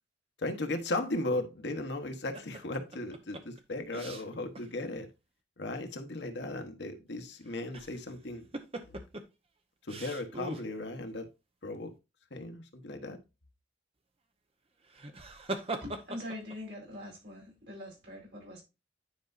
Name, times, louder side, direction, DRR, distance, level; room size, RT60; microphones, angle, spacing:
voice 1, 0.4-5.1 5.6-8.5 8.9-9.0 9.8-11.3 11.6-11.9 12.3-13.2, left 2 dB, 75° left, 1.2 m, -36 dB
sound 1, 2.3-4.7 5.0-5.1 7.5-8.1 8.5-9.2 9.9-10.7 14.8-16.6, right 2 dB, 30° right, 0.9 m, -40 dB
voice 2, 15.8-18.6, left 1 dB, 70° right, 4.5 m, -43 dB
10.0 x 5.4 x 2.6 m
head